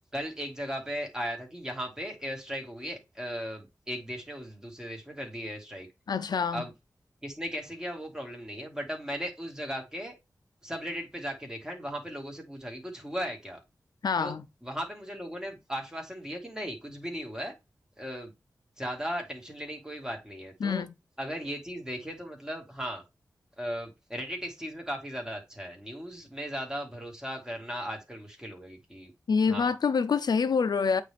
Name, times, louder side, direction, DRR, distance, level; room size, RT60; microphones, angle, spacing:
voice 1, 0.1-5.9 6.5-6.7 7.2-10.1 10.6-13.6 14.2-14.3 14.6-17.5 18.0-18.3 18.8-20.9 21.2-23.0 23.6-29.1 29.5-29.7, equal, 10° right, 2.2 m, -37 dB
voice 2, 6.1-6.7 14.0-14.4 20.6-20.9 29.3-31.0, left 5 dB, 85° left, 0.6 m, -26 dB
8.5 x 3.3 x 3.4 m
wide cardioid pair, 75°, 7 cm